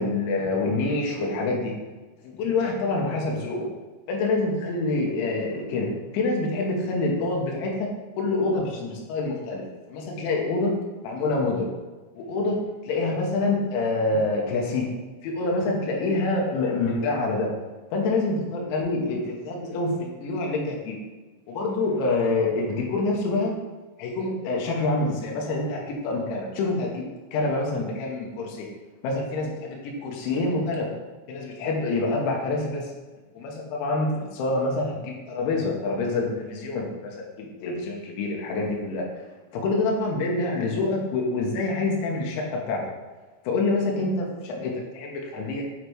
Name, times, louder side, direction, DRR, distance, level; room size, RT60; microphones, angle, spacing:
voice 1, 0.0-1.7 2.2-3.7 4.1-7.9 8.2-9.6 9.9-10.8 11.0-11.7 12.2-14.9 15.2-17.5 17.9-21.0 21.5-23.6 24.0-27.0 27.3-28.7 29.0-30.9 31.3-32.9 33.4-39.0 39.5-42.8 43.5-45.6, left 2 dB, 70° left, -1 dB, 3.4 m, -26 dB
8.4 x 4.1 x 4.7 m, 1.3 s
omnidirectional pair, 5.9 m